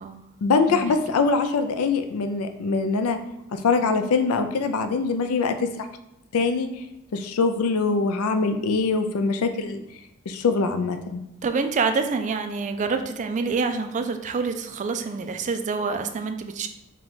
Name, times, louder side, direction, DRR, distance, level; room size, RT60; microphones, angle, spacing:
voice 1, 0.4-3.2 3.5-5.9 6.3-6.7 7.1-9.8 10.3-11.2, left 4 dB, 90° left, 7 dB, 0.4 m, -23 dB
voice 2, 11.4-16.7, right 4 dB, 35° right, 7 dB, 0.3 m, -27 dB
4.5 x 2.3 x 3.9 m, 0.85 s
head